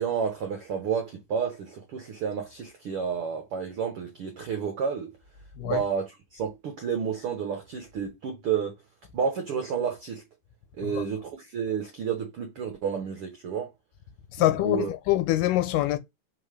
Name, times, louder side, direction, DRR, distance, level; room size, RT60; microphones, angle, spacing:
voice 1, 0.0-5.1 5.6-8.8 9.1-10.2 10.8-13.7 14.6-14.9, right 7 dB, 80° right, 1.2 m, -30 dB
voice 2, 14.3-16.0, left 15 dB, 80° left, 2.3 m, -25 dB
5.9 x 5.2 x 3.3 m
omnidirectional pair, 4.0 m